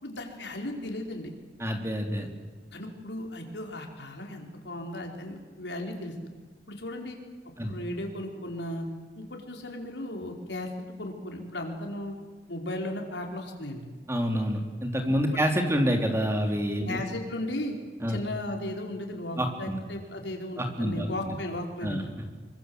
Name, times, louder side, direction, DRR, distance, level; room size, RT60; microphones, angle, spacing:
voice 1, 0.0-1.3 2.7-6.1 6.7-7.2 7.6-8.9 9.1-10.7 11.0-12.1 12.5-13.9 16.8-17.7 18.1-22.1, left 1 dB, 85° left, 2 dB, 5.0 m, -36 dB
voice 2, 1.6-2.3 7.6-7.7 14.1-17.0 18.0-18.2 19.4-19.8 20.6-21.3 21.8-22.0, equal, 15° right, 4 dB, 3.4 m, -27 dB
26.5 x 24.5 x 8.0 m, 1.5 s
head